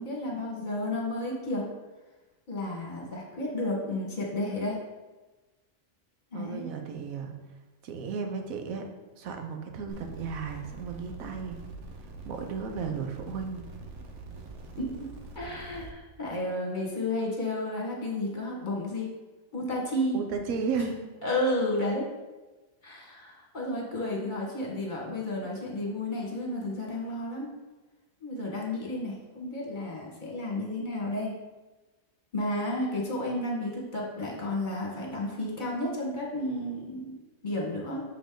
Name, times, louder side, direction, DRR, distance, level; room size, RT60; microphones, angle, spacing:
voice 1, 0.0-1.7 2.5-4.8 6.3-6.6 14.8-15.1 15.3-19.1 19.5-20.2 21.2-22.1 22.8-27.5 28.2-31.3 32.3-37.1 37.4-38.0, left 1 dB, 35° left, -2 dB, 1.6 m, -32 dB
voice 2, 6.3-7.3 7.8-8.9 9.2-11.6 12.2-13.6 20.1-21.0, right 5 dB, 85° right, 5 dB, 1.2 m, -34 dB
sound 1, 9.9-15.9, right 3 dB, 60° right, 1.1 m, -44 dB
6.8 x 5.1 x 3.8 m, 1.2 s
omnidirectional pair, 1.4 m